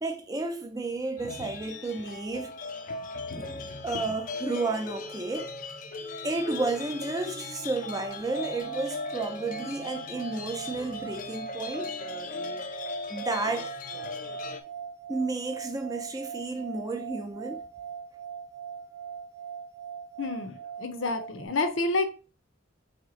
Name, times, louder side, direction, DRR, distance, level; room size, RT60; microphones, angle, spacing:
voice 1, 0.0-2.5 3.3-5.5 6.2-11.9 13.1-13.7 15.1-17.6, right 3 dB, 20° right, 0.5 m, -32 dB
sound 1, 1.2-14.6, left 4 dB, 45° left, 0.4 m, -38 dB
sound 2, 8.1-21.5, right 7 dB, 90° right, 0.6 m, -41 dB
voice 2, 20.2-22.1, left 3 dB, 85° left, 0.7 m, -29 dB
3.2 x 2.9 x 4.0 m
head